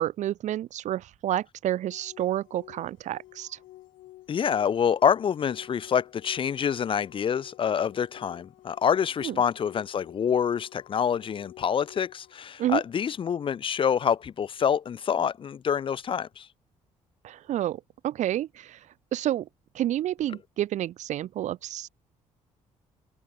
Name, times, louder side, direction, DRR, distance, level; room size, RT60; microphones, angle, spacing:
voice 1, 0.0-3.6 9.2-9.4 12.6-12.8 17.2-18.8 19.1-19.5 19.7-21.9, right 12 dB, 70° right, 0.8 m, -29 dB
sound 1, 1.9-12.3, left 17 dB, 90° left, 5.5 m, -51 dB
voice 2, 4.3-16.5, left 8 dB, 45° left, 0.7 m, -26 dB
cardioid pair, 95°, 13 cm